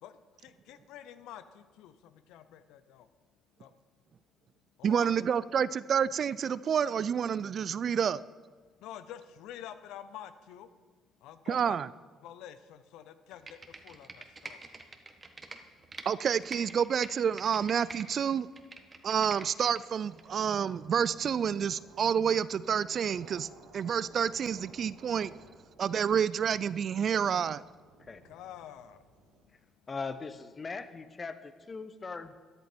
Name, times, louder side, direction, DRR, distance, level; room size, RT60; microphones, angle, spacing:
voice 1, 0.0-3.1 3.6-3.7 4.8-5.2 5.5-5.7 8.8-10.7 11.2-11.8 12.2-14.8 19.0-19.1 28.2-29.5, left 10 dB, 75° left, 12 dB, 0.7 m, -48 dB
voice 2, 4.8-8.2 11.5-11.9 16.1-18.5 19.0-23.5 23.7-25.3 25.8-27.6, right 7 dB, 55° right, 19 dB, 0.4 m, -29 dB
Computer keyboard, 13.3-16.1 16.4-18.1 18.4-19.8 20.2-20.3, right 3 dB, 30° right, 1.5 m, -45 dB
sound 1, 20.1-29.5, right 3 dB, 80° right, 2.2 m, -57 dB
voice 3, 29.9-32.3, left 4 dB, 35° left, 12 dB, 1.0 m, -40 dB
13.5 x 10.5 x 4.5 m, 1.5 s
hypercardioid pair, 55°, 0 cm